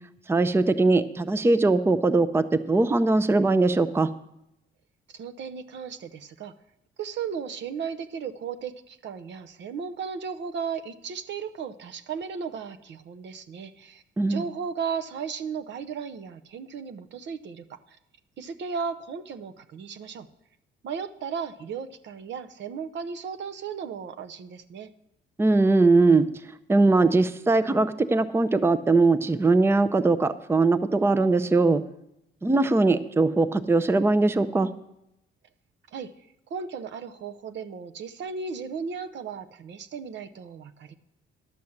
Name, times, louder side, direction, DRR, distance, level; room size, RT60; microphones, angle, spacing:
voice 1, 0.3-4.1 14.2-14.4 25.4-26.3 26.7-31.8 32.4-34.7, right 3 dB, 10° right, 13 dB, 0.5 m, -21 dB
voice 2, 5.1-6.5 7.0-14.0 14.3-18.0 18.4-20.3 20.8-24.9 35.9-36.1 36.5-40.9, right 6 dB, 65° right, 8 dB, 0.7 m, -35 dB
11.5 x 6.4 x 7.1 m, 0.83 s
cardioid pair, 90°, 20 cm